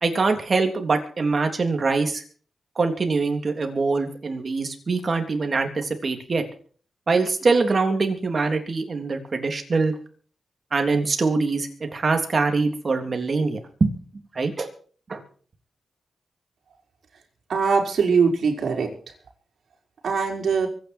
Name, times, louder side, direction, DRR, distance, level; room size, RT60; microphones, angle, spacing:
voice 1, 0.0-2.2 2.8-6.4 7.1-9.9 10.7-13.9 14.3-14.7 15.1-15.2, right 4 dB, 40° right, 6 dB, 3.3 m, -23 dB
voice 2, 17.5-18.9 20.0-20.7, right 5 dB, 70° right, 2 dB, 4.8 m, -21 dB
24.0 x 9.8 x 4.6 m, 0.42 s
wide cardioid pair, 115°, 0 cm